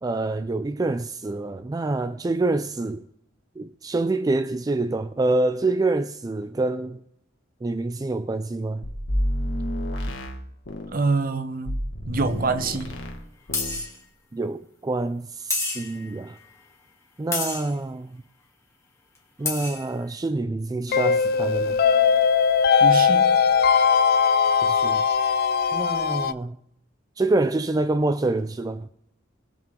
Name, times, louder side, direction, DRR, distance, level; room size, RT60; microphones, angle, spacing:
voice 1, 0.0-3.0 3.6-7.0 7.6-8.9 14.3-16.4 17.2-18.2 19.4-21.8 24.6-25.0 25.7-26.6 27.2-28.9, right 2 dB, 20° right, 0.3 m, -26 dB
sound 1, 8.8-11.0 11.7-13.2 13.5-13.8, equal, 80° left, 1.8 m, -29 dB
voice 2, 10.9-13.0 22.8-23.4, right 3 dB, 50° right, 1.0 m, -26 dB
sound 2, 12.3-12.4 13.5-14.0 15.5-16.1 17.3-17.7 19.1-19.2 19.4-19.9, left 3 dB, 15° left, 2.5 m, -29 dB
sound 3, 20.9-26.3, left 6 dB, 55° left, 0.5 m, -19 dB
21.5 x 7.6 x 3.7 m
head